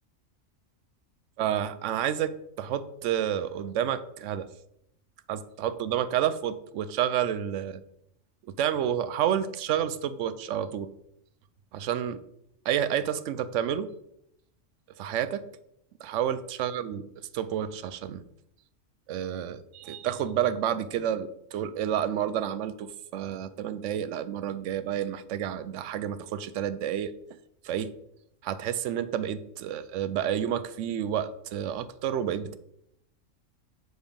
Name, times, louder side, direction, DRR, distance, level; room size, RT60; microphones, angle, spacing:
voice 1, 1.4-4.5 5.3-7.8 8.4-10.9 11.7-12.2 12.6-13.9 15.0-15.4 16.0-18.2 19.1-27.1 27.6-27.9 28.4-32.6, right 10 dB, 75° right, 14 dB, 0.9 m, -30 dB
7.1 x 3.9 x 5.1 m, 0.77 s
omnidirectional pair, 1.3 m